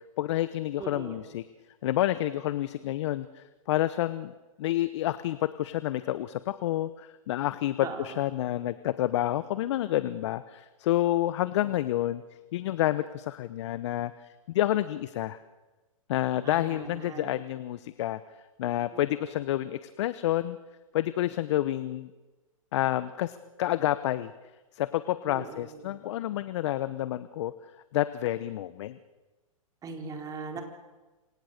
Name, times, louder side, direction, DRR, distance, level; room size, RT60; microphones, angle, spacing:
voice 1, 0.2-1.4 1.8-4.3 4.6-12.2 12.5-14.1 14.5-15.4 16.1-18.2 18.6-20.6 20.9-22.1 22.7-24.3 24.7-27.5 27.9-29.0, left 14 dB, 55° left, 14 dB, 1.0 m, -29 dB
voice 2, 0.8-1.2 7.8-8.2 16.4-17.3 18.9-19.2 25.2-26.0 29.8-30.6, right 5 dB, 20° right, 4 dB, 4.2 m, -40 dB
27.5 x 25.0 x 6.7 m, 1.2 s
hypercardioid pair, 125°, 18 cm